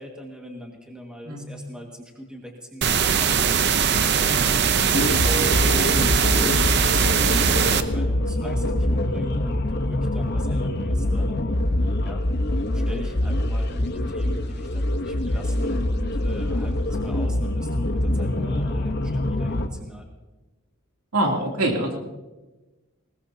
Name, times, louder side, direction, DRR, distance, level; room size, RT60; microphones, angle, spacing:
voice 1, 0.0-11.4 12.0-12.2 12.7-20.1, equal, 5° right, 0 dB, 1.8 m, -40 dB
sound 1, 2.8-7.8, right 7 dB, 50° right, 0.7 m, -21 dB
sound 2, 4.9-19.7, left 1 dB, 50° left, 1.0 m, -24 dB
voice 2, 21.1-22.0, right 1 dB, 85° right, 0 dB, 3.0 m, -24 dB
20.5 x 19.0 x 2.8 m, 1.1 s
head